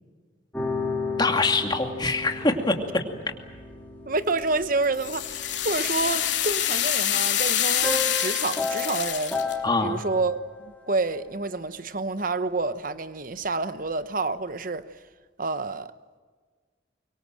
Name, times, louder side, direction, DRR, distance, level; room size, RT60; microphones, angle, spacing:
sound 1, 0.5-7.2 7.8-10.8, left 3 dB, 10° left, 4.3 m, -34 dB
voice 1, 1.2-3.0 9.6-10.0, left 3 dB, 25° left, 2.6 m, -24 dB
voice 2, 4.0-9.4 9.8-14.9 15.4-15.9, right 3 dB, 50° right, 1.1 m, -28 dB
sound 2, 4.4-9.5, left 11 dB, 90° left, 2.9 m, -26 dB
24.5 x 24.0 x 7.7 m
head